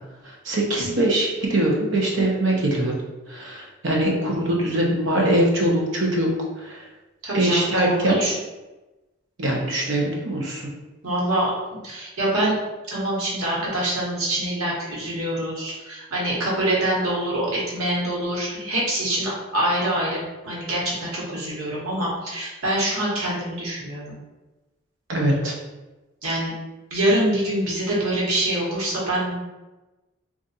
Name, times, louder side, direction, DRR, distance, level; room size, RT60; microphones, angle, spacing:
voice 1, 0.2-3.0 3.3-6.3 6.6-6.9 7.3-8.2 9.4-10.7 25.1-25.5, right 1 dB, 60° right, -2 dB, 0.7 m, -22 dB
voice 2, 7.2-8.3 11.0-12.6 12.9-24.2 26.2-26.5 26.9-29.3, right 1 dB, 85° right, -5 dB, 1.2 m, -25 dB
2.5 x 2.4 x 4.0 m, 1.1 s
head